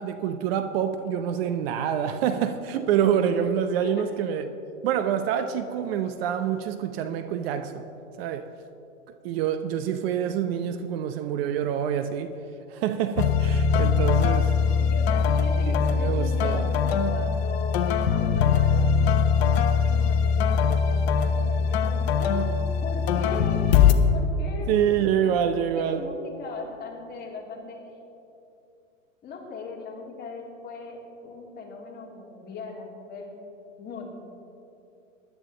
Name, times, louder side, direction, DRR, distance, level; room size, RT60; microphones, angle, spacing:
voice 1, 0.0-4.5 4.8-7.9 8.2-8.5 9.2-12.4 12.7-14.5 15.7-16.7 24.7-26.0, right 9 dB, 50° right, 0.7 m, -26 dB
sound 1, 13.2-23.9, left 6 dB, 55° left, 1.0 m, -22 dB
voice 2, 14.8-19.3 19.8-22.6 22.8-23.6 24.1-25.3 25.7-27.8 29.2-33.4 33.8-34.1, left 4 dB, 25° left, 2.9 m, -39 dB
16.5 x 11.0 x 3.9 m
hypercardioid pair, 120°, 39 cm